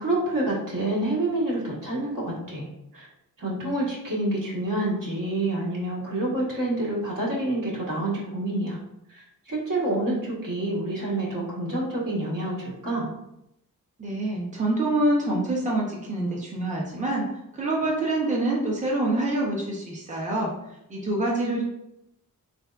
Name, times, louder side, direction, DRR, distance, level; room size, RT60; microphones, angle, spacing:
voice 1, 0.0-2.7 2.9-3.1 3.4-8.8 9.1-13.1, right 1 dB, 65° right, -6 dB, 1.3 m, -28 dB
voice 2, 14.0-17.3 17.6-20.5 20.9-21.6, right 2 dB, 20° right, -3 dB, 0.7 m, -26 dB
3.5 x 3.4 x 2.4 m, 0.83 s
wide cardioid pair, 95°, 36 cm